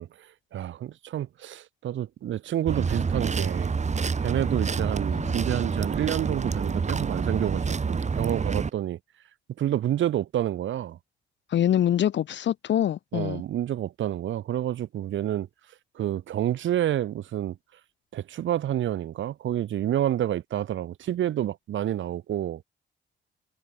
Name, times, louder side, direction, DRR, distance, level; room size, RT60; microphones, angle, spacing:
voice 1, 0.0-3.7 4.2-9.0 9.6-11.0 13.1-15.5 15.9-17.6 18.1-22.6, right 11 dB, 75° right, 7.9 m, -29 dB
sound 1, 2.7-8.7, right 5 dB, 35° right, 6.9 m, -28 dB
voice 2, 11.5-13.4, left 10 dB, 65° left, 2.3 m, -25 dB
cardioid pair, 90°, 20 cm